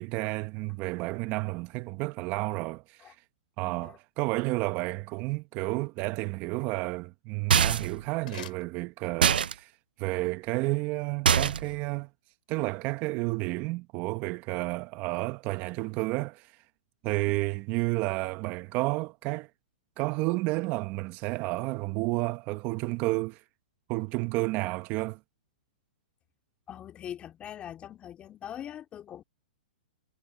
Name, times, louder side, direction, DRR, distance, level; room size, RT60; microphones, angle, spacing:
voice 1, 0.0-3.1 3.6-9.7 10.0-12.1 12.5-16.5 17.0-19.5 20.0-23.4 23.9-25.2, right 23 dB, 35° right, 1.3 m, -31 dB
voice 2, 3.6-4.0 17.3-17.5 26.7-29.2, left 10 dB, 25° left, 3.2 m, -42 dB
sound 1, 7.4-9.5, left 12 dB, 65° left, 4.4 m, -49 dB
sound 2, 7.5-8.0 9.2-9.5 11.3-11.8, right 8 dB, 80° right, 0.6 m, -23 dB
hypercardioid pair, 130°, 5 cm